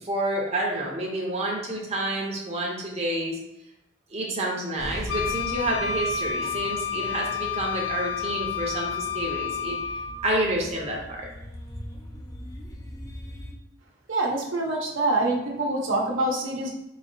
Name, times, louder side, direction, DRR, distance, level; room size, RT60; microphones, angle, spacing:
voice 1, 0.0-3.4 4.1-9.8 10.2-11.3, right 1 dB, 35° right, -2 dB, 0.7 m, -29 dB
sound 1, 4.8-13.5, equal, 20° left, 0.4 m, -41 dB
Wind instrument woodwind instrument, 5.1-10.2, left 7 dB, 85° left, 0.3 m, -30 dB
voice 2, 14.1-16.7, right 2 dB, 80° right, -1 dB, 0.8 m, -25 dB
4.1 x 2.7 x 2.6 m, 0.88 s
head